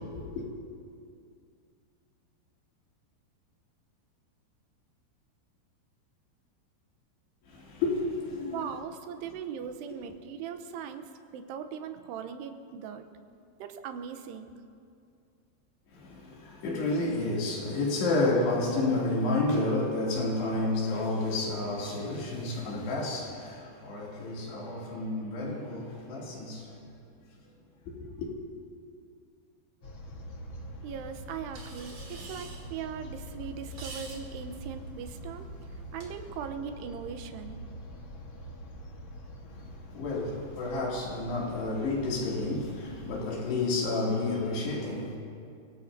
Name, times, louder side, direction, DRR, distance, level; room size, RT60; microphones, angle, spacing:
voice 1, 0.1-0.5 7.5-8.6 15.9-26.8 27.9-28.3 39.9-45.2, left 2 dB, 85° left, 4.9 m, -30 dB
voice 2, 8.5-13.0 13.6-14.5 30.8-35.5 35.9-37.6, right 7 dB, 90° right, 3.0 m, -39 dB
sound 1, 29.8-43.3, equal, 60° left, 1.3 m, -44 dB
sound 2, 31.5-36.5, right 3 dB, 45° right, 2.8 m, -50 dB
29.0 x 17.5 x 2.7 m
omnidirectional pair, 4.7 m